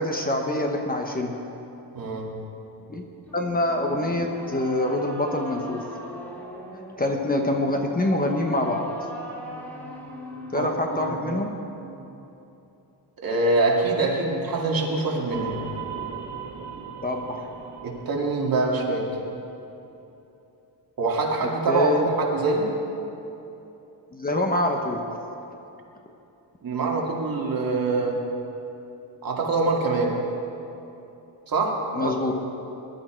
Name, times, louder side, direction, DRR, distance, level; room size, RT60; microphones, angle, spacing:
voice 1, 0.0-1.4 2.9-3.0 3.3-5.9 7.0-8.9 10.5-11.5 17.0-17.4 21.7-22.1 24.1-25.0 31.9-32.3, left 1 dB, 20° left, 2 dB, 1.0 m, -25 dB
voice 2, 1.9-2.3 10.5-11.4 11.8-12.0 13.2-15.6 17.8-19.2 21.0-22.7 26.6-28.2 29.2-30.2 31.5-32.3, right 3 dB, 50° right, -2 dB, 2.4 m, -25 dB
sound 1, 3.2-11.2, equal, 5° left, 2.2 m, -40 dB
sound 2, 15.3-19.7, right 7 dB, 75° right, 2.1 m, -38 dB
20.5 x 11.5 x 4.5 m, 2.9 s
wide cardioid pair, 150°, 43 cm